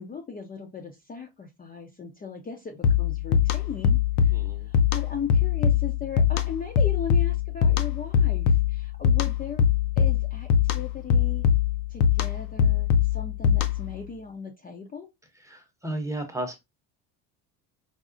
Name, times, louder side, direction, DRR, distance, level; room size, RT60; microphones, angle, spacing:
voice 1, 0.0-9.6 10.0-11.5 11.9-15.1, left 6 dB, 20° left, 2 dB, 0.6 m, -38 dB
sound 1, 2.8-14.0, left 8 dB, 70° left, 0.7 m, -23 dB
voice 2, 4.3-4.7 15.3-16.6, right 1 dB, 5° right, 5 dB, 0.8 m, -34 dB
4.9 x 2.0 x 2.5 m, 0.21 s
supercardioid pair, 100°, 41 cm